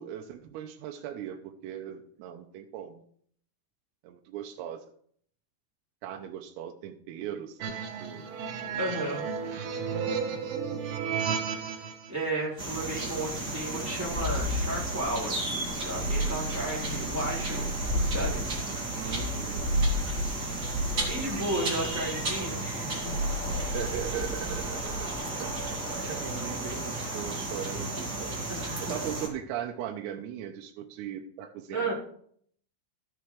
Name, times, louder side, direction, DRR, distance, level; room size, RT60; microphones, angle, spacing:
voice 1, 0.0-3.0 4.0-4.8 6.0-8.3 8.9-9.3 16.4-16.5 17.0-17.1 18.7-19.8 23.7-25.1 25.4-28.5 28.8-31.9, right 10 dB, 90° right, 3 dB, 3.5 m, -39 dB
sound 1, 7.6-12.1, right 6 dB, 70° right, 3.2 m, -33 dB
voice 2, 8.8-9.2 11.1-11.2 12.1-17.7 18.0-18.5 20.3-23.2 25.9-26.1 28.5-28.9 31.7-31.9, right 1 dB, 5° right, -5 dB, 2.9 m, -34 dB
sound 2, 12.6-29.3, right 1 dB, 40° right, 1.4 m, -31 dB
13.5 x 10.0 x 3.3 m, 0.62 s
omnidirectional pair, 5.9 m